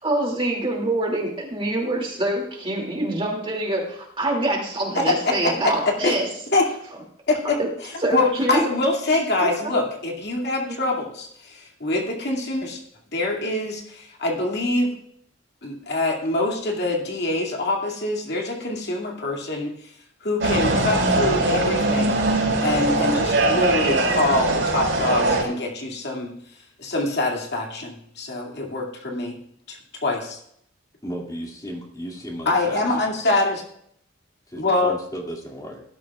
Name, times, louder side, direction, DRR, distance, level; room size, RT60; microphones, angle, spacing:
voice 1, 0.0-6.3 7.6-7.7 8.0-8.6 9.4-9.5 10.7-10.8, right 1 dB, 30° right, 0 dB, 2.5 m, -25 dB
voice 2, 4.9-6.2 6.5-6.7 7.3-12.8 13.1-14.9 15.6-19.9 20.2-22.2 22.6-26.3 26.8-29.4 29.7-30.4 32.5-33.6 34.6-34.9, left 2 dB, 60° left, 0 dB, 2.3 m, -25 dB
sound 1, 20.4-25.4, right 2 dB, 70° right, 5.4 m, -21 dB
voice 3, 31.0-32.9 34.5-35.8, equal, 20° left, 0 dB, 2.2 m, -34 dB
18.5 x 12.0 x 2.4 m, 0.69 s
head